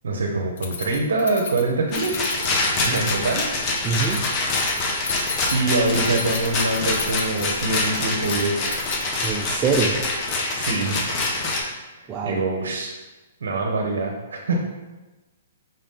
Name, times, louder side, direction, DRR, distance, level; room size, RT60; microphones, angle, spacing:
voice 1, 0.0-2.2 2.8-3.5 5.5-8.9 9.2-9.6 10.5-11.0 12.0-13.0 13.4-14.6, right 3 dB, 80° right, 1 dB, 0.6 m, -24 dB
Keys jangling, 0.6-9.6, left 5 dB, 65° left, 0.6 m, -35 dB
Rattle, 1.9-11.6, left 2 dB, 30° left, 0.7 m, -25 dB
voice 2, 3.8-4.2 9.2-10.0 12.1-12.4, right 5 dB, 20° right, -1 dB, 0.4 m, -24 dB
5.5 x 2.6 x 3.6 m, 1.1 s
hypercardioid pair, 145°, 0 cm